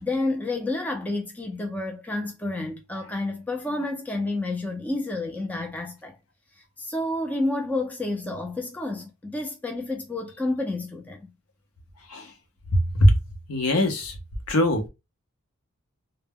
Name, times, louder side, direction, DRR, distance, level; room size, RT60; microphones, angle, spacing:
voice 1, 0.0-6.1 6.8-11.3, left 2 dB, 5° left, 0.4 m, -30 dB
voice 2, 13.5-14.1 14.5-14.9, left 1 dB, 70° left, 0.6 m, -20 dB
2.1 x 2.1 x 3.4 m
head